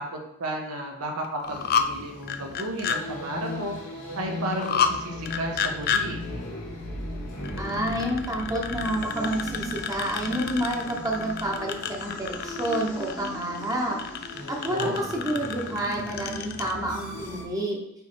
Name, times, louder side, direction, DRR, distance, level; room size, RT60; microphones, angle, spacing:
voice 1, 0.0-3.7 4.1-6.3 14.7-15.0, right 1 dB, 75° right, 1 dB, 1.2 m, -33 dB
sound 1, 1.2-1.9 2.2-3.0 4.5-4.9 5.3-6.0 7.4-16.7, left 7 dB, 45° left, 0.4 m, -30 dB
sound 2, 1.5-17.4, left 1 dB, 85° left, 2.2 m, -38 dB
voice 2, 7.6-14.0 14.5-17.8, right 1 dB, 15° right, -1 dB, 1.0 m, -29 dB
6.9 x 3.2 x 4.5 m, 0.84 s
head